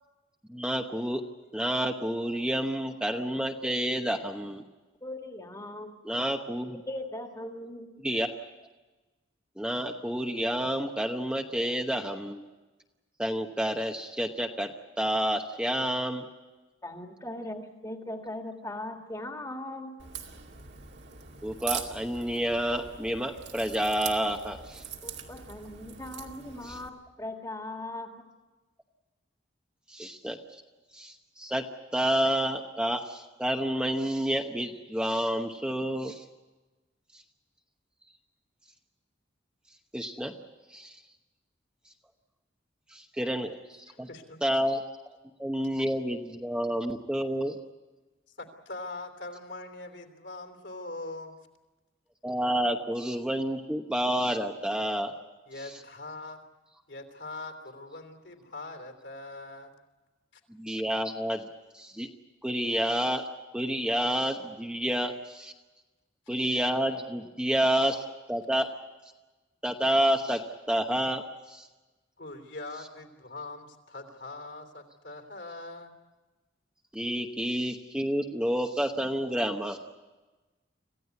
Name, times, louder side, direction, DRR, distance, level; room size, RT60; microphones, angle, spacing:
voice 1, 0.5-1.2 1.5-4.6 6.0-6.8 8.0-8.3 9.6-12.4 13.2-14.7 15.0-16.2 21.4-24.8 26.7-26.8 29.9-30.4 30.9-31.6 31.9-36.2 37.1-37.2 39.9-40.3 40.7-41.0 42.9-44.1 44.4-44.8 45.4-47.6 52.2-55.1 60.6-61.5 61.7-62.1 62.4-63.3 63.5-65.5 66.3-68.7 69.6-70.4 70.7-71.7 76.9-79.8, equal, 5° right, 3 dB, 1.0 m, -29 dB
voice 2, 5.0-6.4 6.9-7.9 16.8-20.0 25.0-28.1, left 1 dB, 15° left, 3 dB, 1.9 m, -39 dB
Crack, 20.0-26.9, right 8 dB, 60° right, 2.3 m, -41 dB
voice 3, 43.9-44.6 48.4-51.4 55.5-56.4 56.9-59.7 60.3-60.4 72.2-75.9, left 2 dB, 65° left, 5 dB, 3.1 m, -42 dB
26.5 x 16.0 x 9.5 m, 1.2 s
head